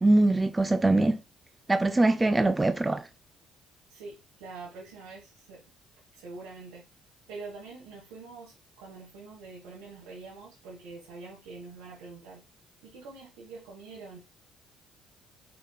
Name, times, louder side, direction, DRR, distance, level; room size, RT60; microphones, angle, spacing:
voice 1, 0.0-1.2 1.7-3.0, right 2 dB, 20° right, 0.3 m, -22 dB
voice 2, 3.9-5.6 6.1-6.8 7.3-12.4 12.8-14.2, right 3 dB, 85° right, 1.3 m, -45 dB
4.9 x 3.9 x 2.3 m
supercardioid pair, 70°, 0 cm